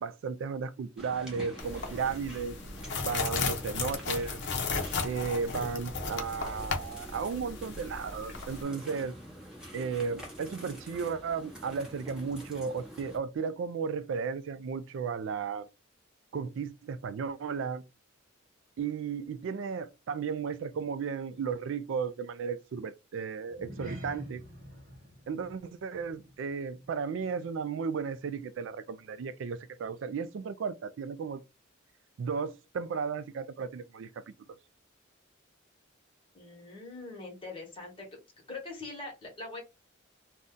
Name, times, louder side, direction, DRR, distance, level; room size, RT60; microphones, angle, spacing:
voice 1, 0.0-2.6 2.8-4.4 4.7-9.1 9.7-15.7 16.3-17.8 18.8-24.4 25.3-31.4 32.2-34.2, right 5 dB, 65° right, 0.3 m, -34 dB
sound 1, 1.0-13.2, equal, 5° right, 0.8 m, -47 dB
sound 2, 1.6-8.6, left 4 dB, 55° left, 0.6 m, -35 dB
sound 3, 23.5-28.1 28.4-28.7 29.1-29.2, equal, 40° right, 0.7 m, -47 dB
voice 2, 36.3-38.1 38.5-39.6, left 3 dB, 25° left, 1.1 m, -42 dB
2.6 x 2.2 x 3.6 m
head